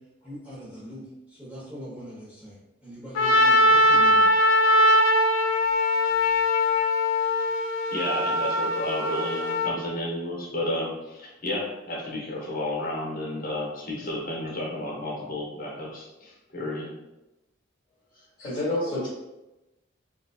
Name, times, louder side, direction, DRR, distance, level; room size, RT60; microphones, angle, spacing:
voice 1, 0.2-4.4, equal, 5° right, -9 dB, 1.1 m, -41 dB
Trumpet, 3.1-9.7, left 1 dB, 75° left, 0.4 m, -21 dB
voice 2, 7.9-17.0, left 1 dB, 45° left, -4 dB, 0.9 m, -32 dB
voice 3, 18.1-19.1, left 1 dB, 25° left, -9 dB, 1.5 m, -29 dB
3.9 x 2.4 x 2.4 m, 0.99 s
head